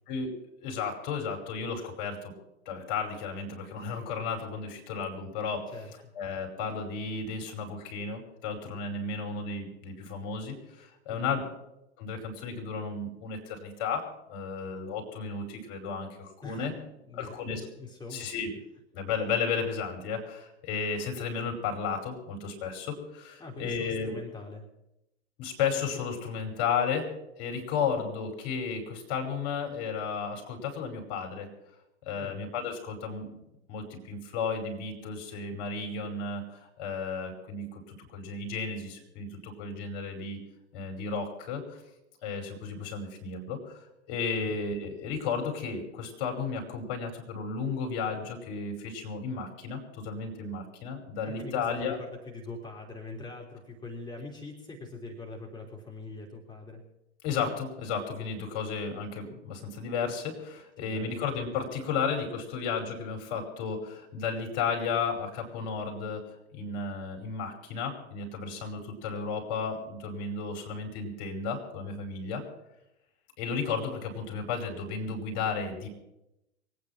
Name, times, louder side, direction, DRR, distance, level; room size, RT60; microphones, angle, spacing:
voice 1, 0.6-2.3 2.7-5.7 6.1-11.4 12.0-16.7 17.2-17.6 18.1-18.5 18.9-24.2 25.4-27.1 27.4-31.5 32.1-33.3 33.7-40.4 40.7-41.8 42.2-43.8 44.1-52.0 57.2-72.4 73.4-75.9, left 5 dB, 55° left, 3 dB, 5.4 m, -33 dB
voice 2, 11.1-11.4 16.4-18.3 23.4-24.6 32.1-32.5 44.4-44.5 51.2-56.8 60.8-61.2, left 3 dB, 10° left, 0 dB, 3.3 m, -43 dB
23.5 x 9.5 x 6.0 m, 0.85 s
figure-of-eight pair, 90°, 36 cm